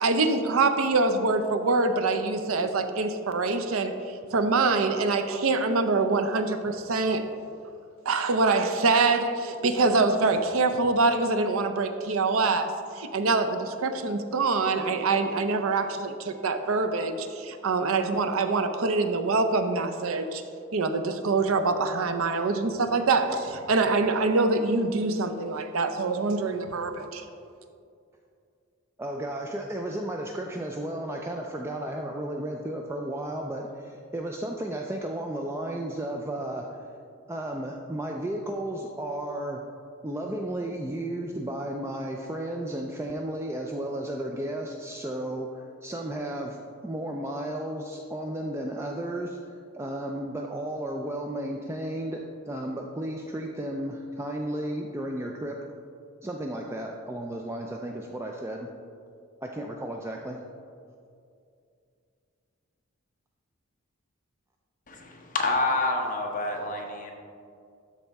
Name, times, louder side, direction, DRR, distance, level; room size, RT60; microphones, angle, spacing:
voice 1, 0.0-7.3 8.1-12.7 13.0-20.4 20.7-27.2, right 3 dB, 80° right, 8 dB, 0.5 m, -25 dB
voice 2, 29.0-36.8 37.3-39.6 40.0-46.6 46.8-55.6 56.2-58.7 59.4-60.4, right 1 dB, 10° right, 1 dB, 0.3 m, -33 dB
voice 3, 64.9-67.1, left 2 dB, 40° left, 1 dB, 0.9 m, -28 dB
12.5 x 4.2 x 3.5 m, 2.4 s
head